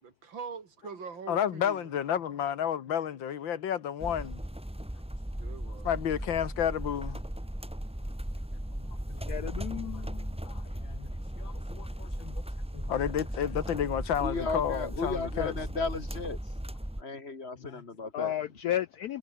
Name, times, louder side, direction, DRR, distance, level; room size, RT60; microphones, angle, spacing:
voice 1, 0.0-1.9 5.4-5.9, right 6 dB, 80° right, 3.2 m, -43 dB
voice 2, 1.3-4.4 5.8-7.2 8.8-9.8 10.4-11.1 11.4-12.4 12.7-15.5 17.6-17.8, left 9 dB, 90° left, 2.1 m, -32 dB
sound 1, 4.0-17.0, right 1 dB, 5° right, 1.3 m, -37 dB
voice 3, 9.3-10.4 18.1-19.2, left 12 dB, 70° left, 1.0 m, -33 dB
voice 4, 14.2-16.5 17.0-18.4, left 3 dB, 35° left, 2.5 m, -35 dB
omnidirectional pair, 2.1 m